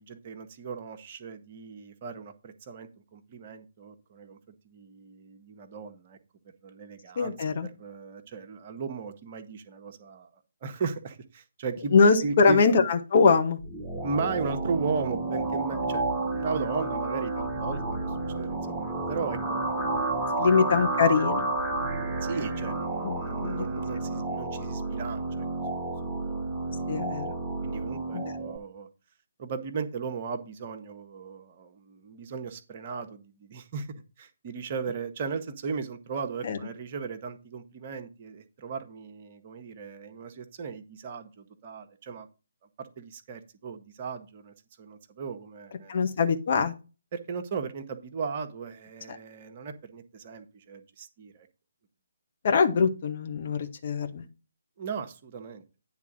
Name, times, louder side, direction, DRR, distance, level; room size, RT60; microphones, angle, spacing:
voice 1, 0.0-4.4 4.6-6.2 6.6-7.4 7.6-10.3 10.6-11.9 12.2-12.6 13.9-20.5 22.2-25.4 25.8-26.4 27.6-28.9 29.4-33.9 34.2-42.3 42.8-45.9 47.1-51.5 54.8-55.6, right 5 dB, 35° right, 7 dB, 1.0 m, -36 dB
voice 2, 7.2-7.7 11.9-13.6 20.4-21.5 23.0-23.6 24.1-24.2 26.9-27.3 28.1-28.3 36.4-36.6 45.9-46.7 49.1-49.2 52.4-54.3, left 5 dB, 45° left, 7 dB, 1.0 m, -23 dB
sound 1, 13.6-28.6, right 2 dB, 10° right, 0.9 m, -31 dB
9.5 x 3.6 x 6.0 m, 0.32 s
figure-of-eight pair, 140°, 0 cm